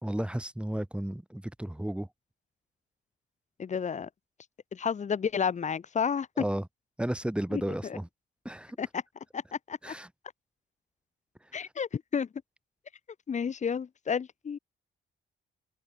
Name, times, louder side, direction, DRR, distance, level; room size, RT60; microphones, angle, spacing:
voice 1, 0.0-2.1 6.4-6.7 7.0-8.1 8.5-8.8 9.8-10.1, right 1 dB, 5° right, 3.5 m, -33 dB
voice 2, 3.6-4.1 4.7-6.5 7.5-8.0 8.8-9.0 9.3-9.9 11.5-12.3 13.3-14.6, left 6 dB, 35° left, 1.0 m, -31 dB
open air
cardioid pair, 90°, 20 cm